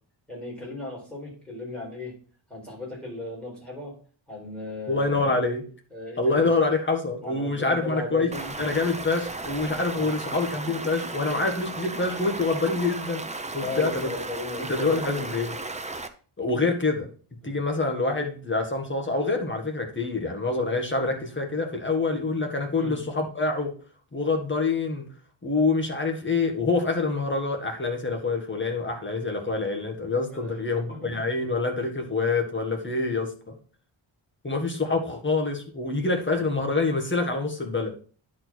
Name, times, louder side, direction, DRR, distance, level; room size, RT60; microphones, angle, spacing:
voice 1, 0.3-2.1 2.5-3.9 4.3-5.4 5.9-6.5 7.2-8.5 9.9-10.1 13.6-15.3 17.4-17.6 22.8-23.0 30.3-31.2, left 2 dB, ahead, -5 dB, 4.7 m, -36 dB
voice 2, 4.9-5.6 6.2-13.2 13.5-14.1 14.6-15.5 16.4-17.1 17.4-23.7 24.1-25.0 25.4-33.5 34.4-37.9, left 3 dB, 25° left, 2 dB, 1.6 m, -26 dB
Stream, 8.3-16.1, right 3 dB, 15° right, 0.5 m, -35 dB
10.0 x 4.4 x 4.6 m, 0.40 s
wide cardioid pair, 175°, 50 cm